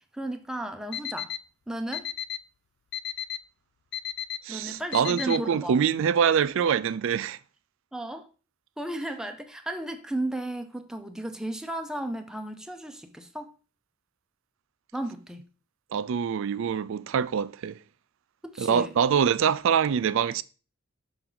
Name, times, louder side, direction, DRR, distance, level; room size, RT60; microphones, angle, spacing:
voice 1, 0.1-1.3 1.7-2.1 4.5-5.7 7.9-8.3 8.8-13.5 14.9-15.4 18.4-18.9, right 1 dB, 5° right, 0.6 m, -34 dB
Alarm, 0.9-1.4 1.9-2.4 2.9-3.4 3.9-4.4 4.9-5.4, left 11 dB, 50° left, 0.3 m, -32 dB
voice 2, 4.4-7.4 15.9-17.8 18.6-20.4, right 7 dB, 65° right, 0.4 m, -24 dB
6.0 x 5.6 x 3.9 m
head